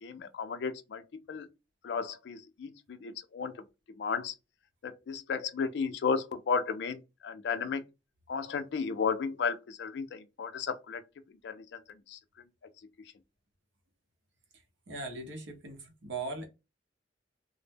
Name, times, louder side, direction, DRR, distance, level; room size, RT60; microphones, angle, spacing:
voice 1, 0.0-1.5 1.8-3.6 4.0-4.3 4.8-7.8 8.3-11.0 11.4-11.8 12.1-12.2, left 5 dB, 60° left, 0.3 m, -34 dB
voice 2, 14.9-16.5, right 3 dB, 75° right, 0.7 m, -39 dB
2.0 x 2.0 x 3.3 m
head